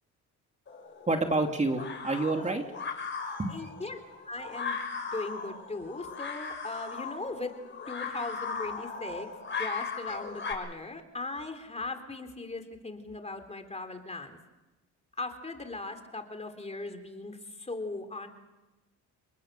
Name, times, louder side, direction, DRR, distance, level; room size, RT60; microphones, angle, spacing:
sound 1, 0.7-10.5, left 5 dB, 40° left, 6.6 m, -38 dB
voice 1, 1.1-2.6 3.2-3.7, right 2 dB, 25° right, 4 dB, 2.6 m, -29 dB
voice 2, 3.5-4.0 4.3-4.8 5.1-7.5 7.9-9.3 9.5-14.4 15.2-18.3, left 3 dB, 20° left, 7 dB, 3.6 m, -38 dB
30.0 x 19.5 x 6.9 m, 1.1 s
cardioid pair, 90°, 30 cm